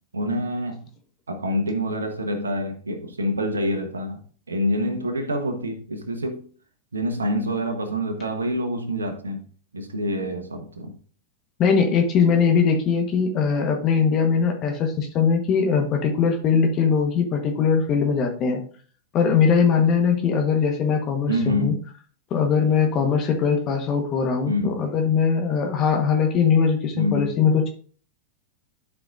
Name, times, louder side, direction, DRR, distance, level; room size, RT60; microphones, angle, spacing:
voice 1, 0.1-0.8 1.3-4.2 4.5-6.4 6.9-9.4 9.7-10.9 21.3-21.8 24.4-24.8 26.9-27.3, equal, 85° right, 1.2 m, -26 dB
voice 2, 11.6-18.6 19.1-21.7 22.3-27.7, left 6 dB, 40° left, 1.3 m, -21 dB
12.0 x 4.8 x 2.6 m
hypercardioid pair, 100°, 0 cm